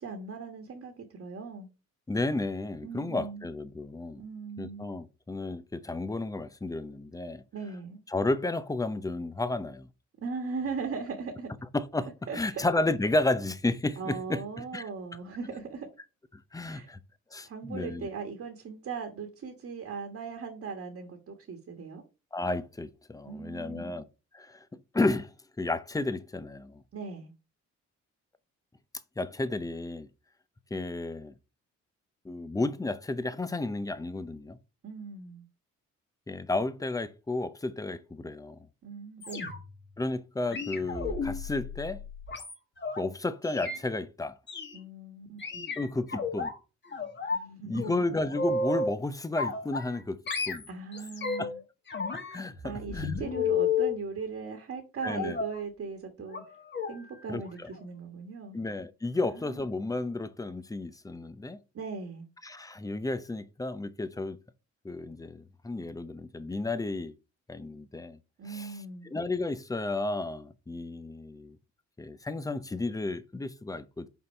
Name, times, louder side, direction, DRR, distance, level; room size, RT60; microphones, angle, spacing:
voice 1, 0.0-1.7 2.8-3.4 4.2-4.9 7.5-8.0 10.2-11.5 12.3-12.6 14.0-15.9 16.7-16.9 17.4-22.0 23.2-23.9 26.9-27.3 34.8-35.4 38.8-39.5 44.7-45.7 47.3-48.2 50.7-51.6 52.6-56.4 56.9-58.6 59.2-59.6 61.7-62.2 68.4-69.1, right 5 dB, 50° right, 1.4 m, -39 dB
voice 2, 2.1-4.2 4.6-7.4 8.1-9.9 11.7-14.4 14.7-14.8 16.5-17.0 17.3-18.1 22.3-24.1 24.3-24.7 24.9-25.3 25.6-26.8 29.2-30.1 30.7-31.3 32.2-34.6 36.3-38.6 40.0-42.0 43.0-44.4 45.8-46.5 47.6-50.7 51.4-51.5 52.3-53.2 55.0-55.4 57.3-57.4 58.5-61.6 62.4-64.4 64.8-67.1 67.5-68.2 68.5-68.8 69.0-71.6 72.0-74.1, left 2 dB, 10° left, 0.6 m, -32 dB
sound 1, 39.2-39.8 40.5-43.0 43.4-43.8 44.5-44.8 45.4-46.5 46.9-47.5 47.8-49.0 49.4-50.0 50.3-51.6 51.9-54.0 55.1-55.6 56.3-56.5 56.7-56.9 57.3-57.5 57.8-57.9, left 4 dB, 35° left, 1.6 m, -32 dB
5.5 x 4.1 x 4.4 m
cardioid pair, 90°, 30 cm